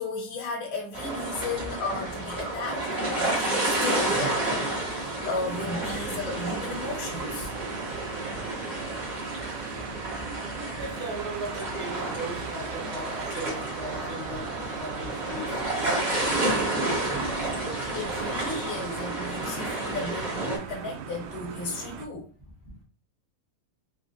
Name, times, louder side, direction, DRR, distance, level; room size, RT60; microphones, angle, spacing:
voice 1, 0.0-7.5 17.9-22.2, left 3 dB, 80° left, 2.7 m, -34 dB
sound 1, 0.9-20.6, right 2 dB, 30° right, 1.3 m, -30 dB
sound 2, 5.5-22.1, right 7 dB, 85° right, 1.6 m, -40 dB
voice 2, 9.7-10.3 10.6-17.3, right 2 dB, 55° right, 0.6 m, -39 dB
5.7 x 2.7 x 2.6 m
omnidirectional pair, 3.7 m